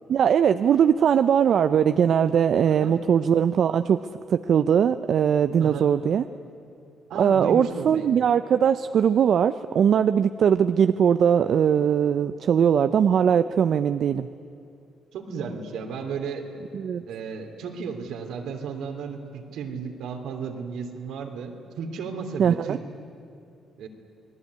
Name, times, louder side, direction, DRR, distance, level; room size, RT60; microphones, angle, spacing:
voice 1, 0.1-6.3 7.2-14.3 16.7-17.0 22.4-22.8, right 8 dB, 60° right, 11 dB, 0.6 m, -20 dB
voice 2, 7.1-8.1 15.1-16.4 17.1-22.8 23.8-23.9, right 5 dB, 80° right, 4 dB, 3.0 m, -34 dB
28.0 x 19.5 x 9.7 m, 2.6 s
cardioid pair, 90°, 0 cm